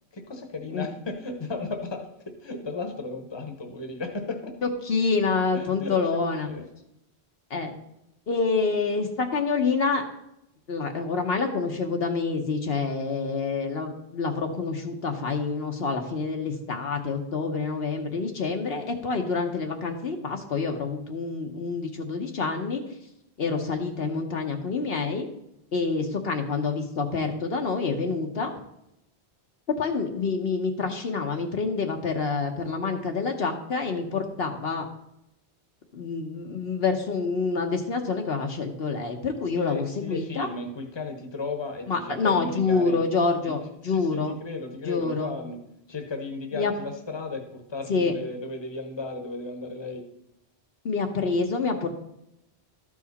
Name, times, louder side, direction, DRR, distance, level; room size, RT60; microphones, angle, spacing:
voice 1, 0.1-4.6 5.5-6.7 39.5-43.0 43.4-43.6 43.8-45.6 45.9-50.1, left 3 dB, 25° left, 5 dB, 1.0 m, -35 dB
voice 2, 4.6-6.5 7.5-7.7 8.3-10.0 10.7-22.8 23.4-25.3 25.7-28.5 29.8-34.8 35.9-40.5 41.9-44.3 44.8-45.3 46.5-46.7 47.9-48.1 50.8-51.9, left 4 dB, 65° left, 4 dB, 1.1 m, -27 dB
13.0 x 4.9 x 4.0 m, 0.84 s
omnidirectional pair, 1.1 m